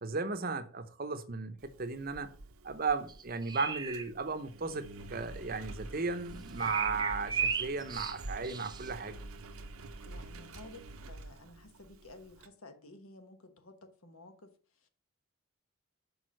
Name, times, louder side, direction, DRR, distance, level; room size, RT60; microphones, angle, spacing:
voice 1, 0.0-2.3 2.6-9.2, right 4 dB, 40° right, 0.7 m, -35 dB
Engine, 1.6-12.5, right 2 dB, 75° right, 0.8 m, -48 dB
sound 1, 3.1-4.1 6.6-8.9, right 6 dB, 20° right, 0.4 m, -35 dB
voice 2, 10.0-14.9, left 2 dB, 70° left, 1.1 m, -53 dB
6.3 x 5.1 x 6.3 m
head